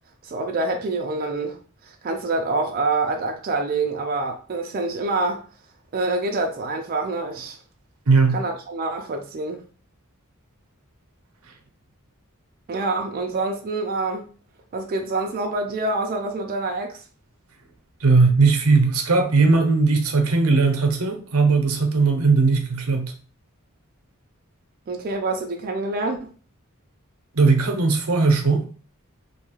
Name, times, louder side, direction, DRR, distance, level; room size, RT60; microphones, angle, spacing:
voice 1, 0.2-1.6 1.8-5.4 5.9-7.6 8.3-9.6 12.7-14.3 14.7-17.0 24.9-26.3, right 3 dB, 45° right, 0.4 m, -26 dB
voice 2, 8.1-8.4 18.0-23.1 27.3-28.6, right 4 dB, 90° right, 0.6 m, -18 dB
2.6 x 2.3 x 2.9 m
head